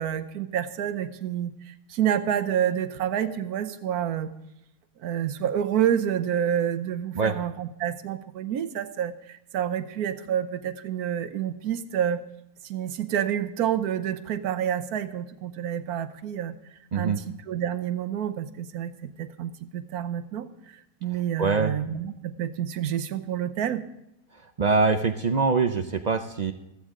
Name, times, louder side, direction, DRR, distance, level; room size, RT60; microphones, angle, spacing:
voice 1, 0.0-4.3 5.0-12.2 12.6-16.5 16.9-18.9 19.2-20.5 21.0-23.8, right 9 dB, 85° right, 10 dB, 1.3 m, -28 dB
voice 2, 21.4-21.7 24.6-26.5, right 4 dB, 60° right, 8 dB, 0.4 m, -23 dB
14.5 x 14.0 x 3.7 m, 0.85 s
omnidirectional pair, 1.6 m